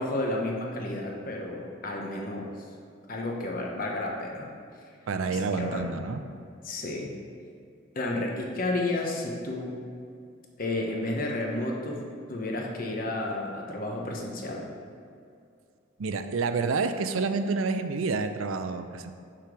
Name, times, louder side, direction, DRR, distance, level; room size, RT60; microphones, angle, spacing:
voice 1, 0.0-2.6 3.1-4.5 5.3-5.9 6.6-7.1 7.9-9.8 10.6-14.7, left 2 dB, 45° left, -1 dB, 1.0 m, -31 dB
voice 2, 5.1-6.2 16.0-19.1, right 4 dB, 85° right, 9 dB, 0.5 m, -28 dB
5.8 x 5.0 x 6.0 m, 2.4 s
head